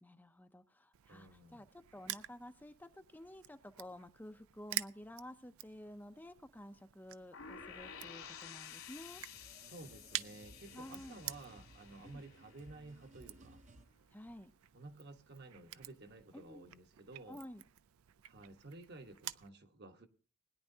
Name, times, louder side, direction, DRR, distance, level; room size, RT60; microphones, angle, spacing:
voice 1, 0.0-9.2 10.7-11.2 12.0-12.2 14.1-14.5 16.3-16.7 17.3-17.6, left 1 dB, 10° left, 0.5 m, -52 dB
Crushing, 0.9-19.5, right 14 dB, 90° right, 0.4 m, -49 dB
voice 2, 1.1-1.7 9.6-13.6 14.7-17.4 18.3-20.1, right 2 dB, 50° right, 1.2 m, -53 dB
sound 1, 7.3-13.2, left 7 dB, 90° left, 2.9 m, -53 dB
sound 2, 8.7-13.8, right 2 dB, 35° right, 0.7 m, -60 dB
21.0 x 10.0 x 2.7 m
head